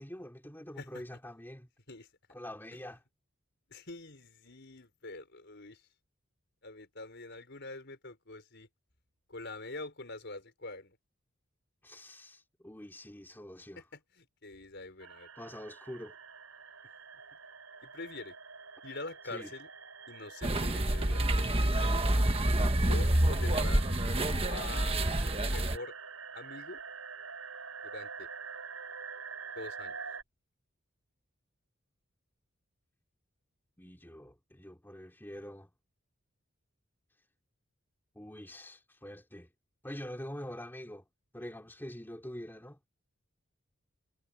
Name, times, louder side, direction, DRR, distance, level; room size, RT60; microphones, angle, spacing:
voice 1, 0.0-1.7 2.3-3.0 11.8-13.8 15.4-16.1 19.3-19.5 33.8-35.7 38.1-39.5 39.8-41.0 41.3-42.8, equal, 10° left, 2.9 m, -45 dB
voice 2, 3.7-5.8 6.6-8.7 9.3-11.0 13.8-15.3 17.8-18.4 18.8-19.7 20.1-22.0 22.9-23.8 24.5-25.0 25.4-26.0 26.3-26.8 27.8-28.3 29.6-30.0, left 2 dB, 55° left, 5.4 m, -45 dB
sound 1, 15.0-30.2, right 5 dB, 90° right, 5.7 m, -46 dB
sound 2, 20.4-25.8, right 1 dB, 25° right, 1.3 m, -28 dB
head